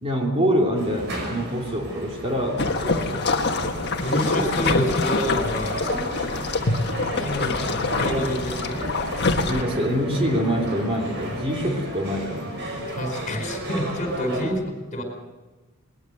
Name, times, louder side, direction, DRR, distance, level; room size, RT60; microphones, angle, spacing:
voice 1, 0.0-3.3 9.4-12.6 14.4-14.6, equal, 25° right, 0 dB, 3.1 m, -25 dB
sound 1, 0.7-14.5, right 1 dB, 55° right, 5.8 m, -33 dB
sound 2, 2.6-9.6, left 3 dB, 50° left, 1.4 m, -25 dB
voice 2, 4.0-5.8 6.6-6.7 7.2-8.8 12.9-14.6 14.9-15.0, equal, 35° left, 4 dB, 4.8 m, -28 dB
21.0 x 20.0 x 6.7 m, 1.2 s
head